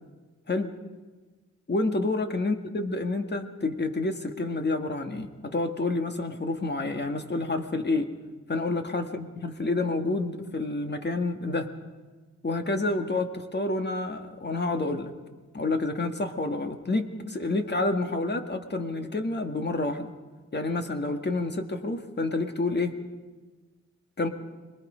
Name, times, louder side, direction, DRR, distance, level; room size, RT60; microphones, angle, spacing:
voice 1, 1.7-8.1 8.5-11.7 12.4-15.1 15.5-20.1 20.5-23.0 24.2-24.3, left 2 dB, 35° left, 6 dB, 1.7 m, -29 dB
25.5 x 20.5 x 5.1 m, 1.3 s
cardioid pair, 75°, 29 cm